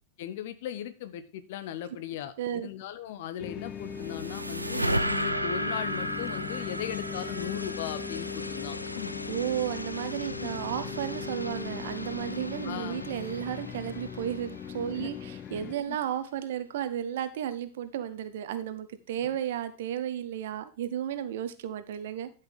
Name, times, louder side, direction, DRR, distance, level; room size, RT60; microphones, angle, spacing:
voice 1, 0.2-9.2 10.4-10.5 12.6-13.0 14.9-15.1 15.9-16.0, left 10 dB, 55° left, 12 dB, 0.9 m, -38 dB
voice 2, 2.4-2.7 9.3-22.3, right 10 dB, 55° right, 12 dB, 0.9 m, -33 dB
sound 1, 3.4-15.8, left 8 dB, 25° left, 0.5 m, -39 dB
sound 2, 3.6-9.0, right 1 dB, 85° right, 0.7 m, -33 dB
sound 3, 5.6-16.6, left 1 dB, 85° left, 0.5 m, -42 dB
11.5 x 5.9 x 4.7 m, 0.33 s
figure-of-eight pair, 90°, 0 cm